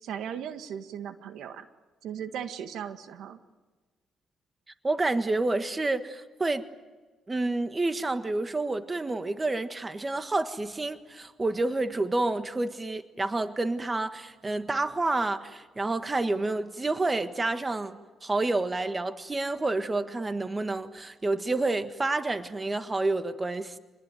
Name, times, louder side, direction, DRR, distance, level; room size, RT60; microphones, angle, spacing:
voice 1, 0.0-1.7 2.0-3.4, right 8 dB, 80° right, 1.7 m, -37 dB
voice 2, 4.8-6.7 7.3-23.8, right 2 dB, 20° right, 1.5 m, -29 dB
26.5 x 21.0 x 9.3 m
cardioid pair, 90°, 0 cm